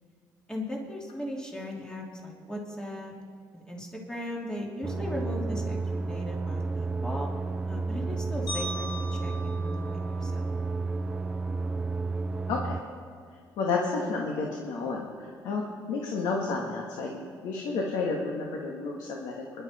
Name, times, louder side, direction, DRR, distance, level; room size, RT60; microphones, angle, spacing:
voice 1, 0.5-3.1 3.5-5.8 6.1-7.3 7.7-10.5, left 1 dB, 10° left, -2 dB, 2.8 m, -37 dB
sound 1, 4.8-12.8, right 3 dB, 15° right, 0.4 m, -31 dB
sound 2, 8.5-10.8, right 1 dB, 60° left, 3.7 m, -39 dB
voice 2, 12.5-12.8 13.6-15.1 15.4-15.6 15.9-19.6, left 4 dB, 80° left, 0 dB, 1.9 m, -31 dB
25.0 x 11.5 x 4.4 m, 2.1 s
cardioid pair, 110°, 7 cm